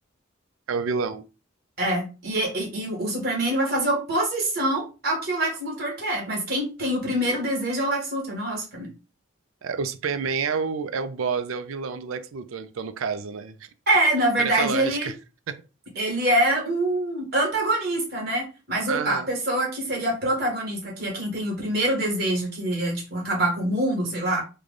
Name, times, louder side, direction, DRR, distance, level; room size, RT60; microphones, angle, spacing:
voice 1, 0.7-1.2 9.6-13.6 14.4-15.1 15.5-15.6 18.9-19.3, right 5 dB, 80° right, 0.5 m, -29 dB
voice 2, 1.8-8.9 13.9-15.1 15.9-24.4, right 1 dB, 50° right, 1.5 m, -25 dB
3.2 x 2.2 x 3.8 m
head